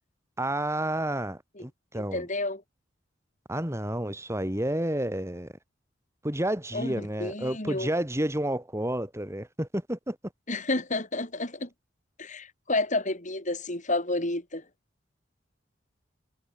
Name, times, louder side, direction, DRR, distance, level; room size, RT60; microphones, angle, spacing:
voice 1, 0.4-2.3 3.5-5.5 6.2-10.2, right 1 dB, 15° right, 4.0 m, -30 dB
voice 2, 1.9-2.6 6.7-7.9 10.5-11.7 12.2-14.6, left 2 dB, 40° left, 6.5 m, -30 dB
head